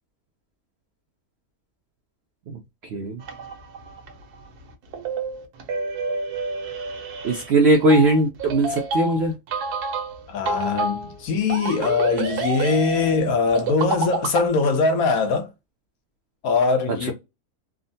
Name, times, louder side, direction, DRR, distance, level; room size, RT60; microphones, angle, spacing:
voice 1, 2.9-3.2 7.2-9.3, right 2 dB, 70° right, 0.6 m, -19 dB
sound 1, 3.2-14.5, right 4 dB, 85° right, 1.3 m, -29 dB
voice 2, 10.3-15.5 16.4-17.1, left 4 dB, 70° left, 1.1 m, -22 dB
3.6 x 2.1 x 2.6 m
omnidirectional pair, 1.6 m